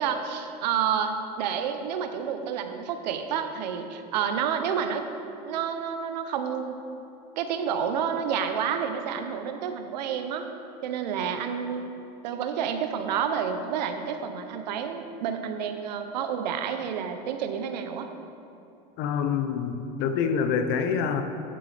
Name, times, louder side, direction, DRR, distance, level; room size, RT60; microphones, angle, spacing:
voice 1, 0.0-5.0 5.5-6.8 7.4-10.5 10.8-11.9 12.2-18.1, right 7 dB, 85° right, 7 dB, 0.7 m, -29 dB
voice 2, 19.0-21.2, left 6 dB, 60° left, 8 dB, 0.8 m, -26 dB
10.0 x 7.5 x 3.4 m, 2.9 s
supercardioid pair, 100°, 21 cm